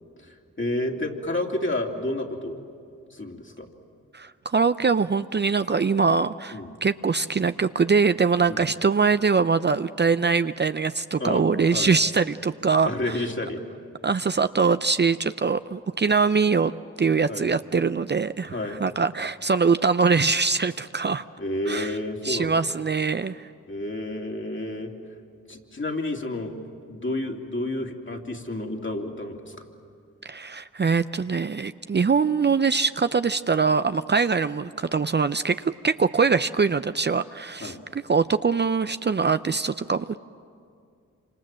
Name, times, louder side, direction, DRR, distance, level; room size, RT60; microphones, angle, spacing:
voice 1, 0.2-2.6 3.1-3.7 6.5-6.7 8.5-8.6 11.2-11.4 11.7-11.9 12.8-13.6 17.3-17.4 18.5-18.8 21.4-22.5 23.7-24.9 25.5-26.6 26.9-29.6 37.6-37.8, left 1 dB, 40° left, 2 dB, 2.8 m, -30 dB
voice 2, 4.1-13.2 14.0-16.7 17.0-21.2 21.7-21.9 22.2-23.5 30.2-40.2, right 5 dB, 35° right, 12 dB, 0.6 m, -23 dB
27.0 x 26.0 x 7.5 m, 2.3 s
cardioid pair, 50°, 31 cm